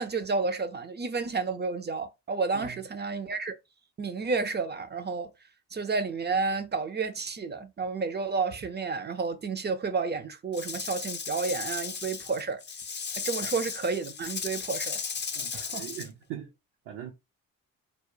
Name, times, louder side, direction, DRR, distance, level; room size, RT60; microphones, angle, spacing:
voice 1, 0.0-3.6 4.0-5.3 5.7-12.6 13.2-15.0 15.5-15.9, right 4 dB, 25° right, 0.4 m, -31 dB
Rattle / Rattle (instrument), 10.5-16.1, left 6 dB, 25° left, 0.5 m, -35 dB
voice 2, 15.4-16.5 16.9-17.1, right 10 dB, 70° right, 0.6 m, -41 dB
2.4 x 2.1 x 3.0 m
hypercardioid pair, 45°, 42 cm